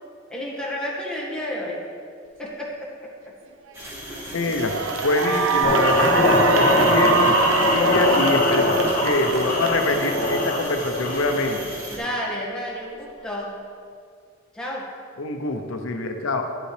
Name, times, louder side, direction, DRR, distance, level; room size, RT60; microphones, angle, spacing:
voice 1, 0.3-1.8 2.4-2.9 7.6-8.1 11.9-13.5 14.5-14.8, left 1 dB, 5° left, -5 dB, 1.8 m, -30 dB
sound 1, 3.7-12.0, right 1 dB, 15° right, 2.3 m, -37 dB
Cheering / Applause, 3.7-4.0 4.4-10.9, right 5 dB, 75° right, 0.7 m, -25 dB
voice 2, 4.3-7.3 7.7-11.7 15.2-16.4, left 2 dB, 90° left, 5 dB, 0.8 m, -25 dB
sound 2, 5.6-11.6, left 1 dB, 45° left, 1.3 m, -21 dB
11.0 x 7.9 x 3.4 m, 2.2 s
head